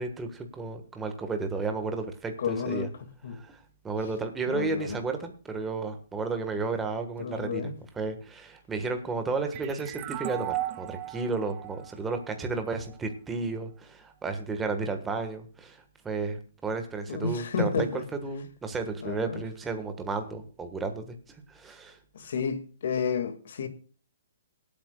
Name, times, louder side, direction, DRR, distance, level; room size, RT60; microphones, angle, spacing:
voice 1, 0.0-2.9 3.3-22.0, right 4 dB, 10° right, 1.3 m, -33 dB
voice 2, 2.4-2.9 3.2-3.4 4.5-5.0 7.2-7.7 17.1-18.0 19.0-19.4 22.1-23.7, left 6 dB, 60° left, 1.9 m, -31 dB
sound 1, 9.5-12.9, right 16 dB, 25° right, 0.4 m, -36 dB
26.0 x 8.7 x 2.3 m
hypercardioid pair, 170°, 0 cm